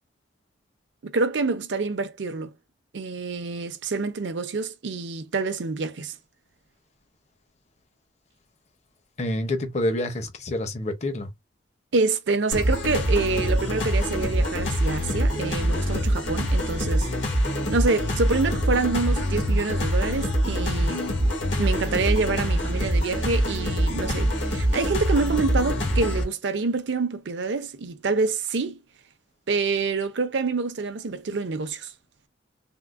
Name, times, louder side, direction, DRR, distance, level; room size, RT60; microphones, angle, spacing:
voice 1, 1.0-2.5 2.9-6.2 11.9-17.1 17.7-21.1 21.6-28.8 29.5-31.9, right 4 dB, 70° right, 0.6 m, -27 dB
voice 2, 9.2-11.3, left 1 dB, 35° left, 0.6 m, -27 dB
sound 1, 12.5-26.2, equal, 75° left, 1.2 m, -24 dB
3.6 x 2.1 x 2.4 m
head